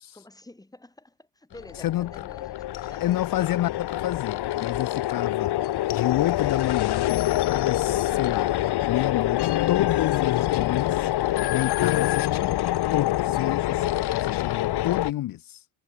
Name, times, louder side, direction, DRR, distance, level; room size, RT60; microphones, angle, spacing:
voice 1, 0.0-3.8, left 2 dB, 10° left, 5.6 m, -49 dB
sound 1, 1.5-15.1, left 15 dB, 90° left, 1.6 m, -25 dB
voice 2, 1.8-2.1 3.0-7.1 7.5-8.5 8.9-12.6 12.9-15.6, left 14 dB, 60° left, 0.7 m, -29 dB
cardioid pair, 130°, 38 cm